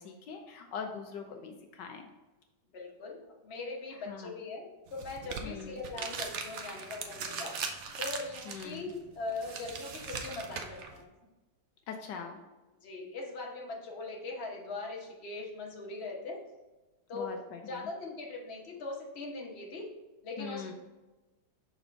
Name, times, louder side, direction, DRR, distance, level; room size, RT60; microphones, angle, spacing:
voice 1, 0.0-2.0 4.1-4.3 5.4-5.8 8.5-8.9 11.9-12.4 17.1-17.9 20.4-20.7, left 6 dB, 80° left, 4 dB, 1.3 m, -42 dB
voice 2, 2.7-7.6 8.0-11.1 12.8-16.4 17.1-17.4 17.6-19.9 20.2-20.7, left 3 dB, 40° left, -1 dB, 1.2 m, -40 dB
sound 1, 4.9-11.0, right 5 dB, 60° right, 0.7 m, -40 dB
6.1 x 4.3 x 3.9 m, 1.1 s
omnidirectional pair, 1.9 m